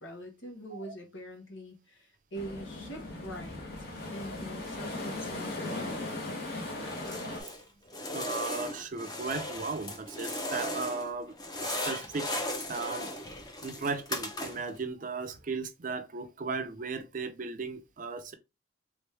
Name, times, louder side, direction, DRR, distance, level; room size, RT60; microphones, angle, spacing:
voice 1, 0.0-5.9, right 1 dB, 80° left, 1.4 m, -44 dB
sound 1, 2.4-7.4, left 2 dB, 50° left, 1.1 m, -38 dB
sound 2, 6.8-7.6 7.9-11.1 11.4-14.8, left 1 dB, 20° left, 0.7 m, -37 dB
voice 2, 8.1-12.3 12.7-13.1 13.6-18.3, right 4 dB, 45° right, 0.5 m, -36 dB
3.5 x 3.1 x 3.3 m
head